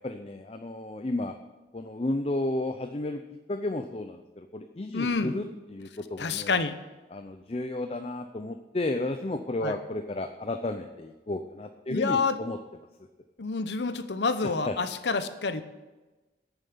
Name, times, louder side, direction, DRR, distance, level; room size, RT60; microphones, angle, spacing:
voice 1, 0.0-1.3 1.7-3.2 3.5-6.6 7.1-12.6 14.6-14.8, left 2 dB, 35° left, 7 dB, 0.5 m, -32 dB
voice 2, 4.9-5.3 6.2-6.8 9.6-9.8 11.9-12.4 13.4-15.6, left 4 dB, 85° left, 11 dB, 0.8 m, -28 dB
9.2 x 7.2 x 8.6 m, 1.2 s
head